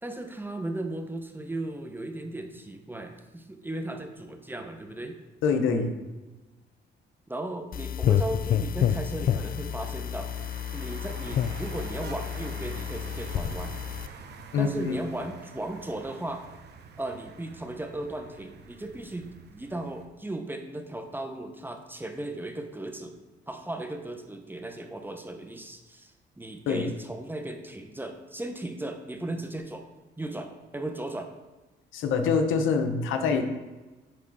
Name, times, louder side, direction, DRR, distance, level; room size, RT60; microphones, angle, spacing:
voice 1, 0.0-5.2 7.3-10.5 10.7-13.7 14.6-16.4 17.0-23.2 23.5-29.9 30.2-31.3, right 1 dB, 10° right, 5 dB, 0.7 m, -36 dB
voice 2, 5.4-5.9 14.5-14.9 26.7-26.9 31.9-33.4, left 5 dB, 85° left, 6 dB, 0.8 m, -25 dB
sound 1, 7.7-14.1, left 9 dB, 45° left, 0.4 m, -29 dB
sound 2, 9.4-20.1, right 5 dB, 60° right, 0.7 m, -46 dB
9.7 x 3.3 x 4.0 m, 1.2 s
cardioid pair, 90°, 20 cm